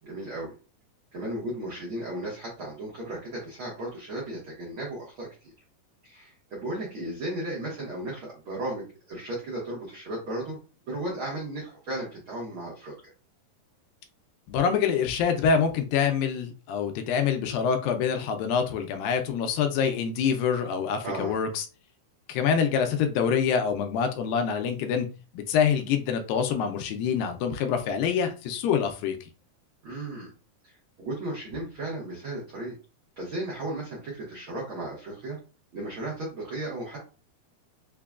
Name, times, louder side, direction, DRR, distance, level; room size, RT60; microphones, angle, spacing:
voice 1, 0.0-0.5 1.1-5.5 6.0-10.6 10.8-12.9 21.0-21.4 29.8-30.3 30.6-30.7 31.0-32.7 33.2-35.4 35.7-37.0, right 1 dB, 85° right, -5 dB, 1.1 m, -35 dB
voice 2, 14.5-21.7 22.3-25.1 25.3-29.2, left 7 dB, 85° left, 6 dB, 2.3 m, -26 dB
5.7 x 2.2 x 2.3 m, 0.33 s
omnidirectional pair, 4.1 m